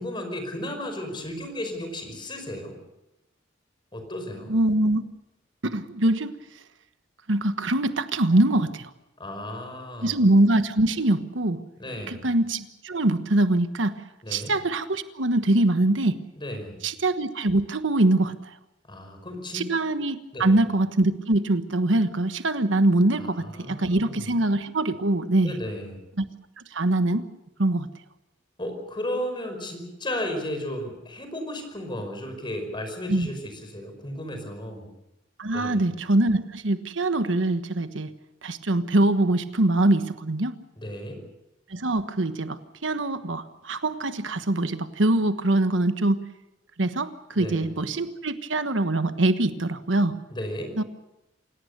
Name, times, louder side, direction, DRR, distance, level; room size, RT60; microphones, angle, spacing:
voice 1, 0.0-2.8 3.9-4.6 9.2-10.2 11.8-12.3 14.2-14.5 16.4-16.8 18.9-19.6 20.3-20.6 23.1-24.3 25.4-26.0 28.6-34.9 35.5-35.8 40.8-41.2 47.3-47.7 50.3-50.8, left 1 dB, 25° left, 6 dB, 5.2 m, -34 dB
voice 2, 4.5-5.0 5.6-6.3 7.3-8.9 10.0-11.6 12.1-13.9 14.3-16.2 16.8-18.5 19.5-25.5 26.2-26.3 26.7-27.2 27.6-27.9 33.1-33.3 35.4-38.1 38.4-40.5 41.7-46.2 46.8-50.1 50.8-50.9, right 2 dB, 85° right, 10 dB, 1.3 m, -23 dB
28.0 x 17.5 x 6.8 m, 0.92 s
head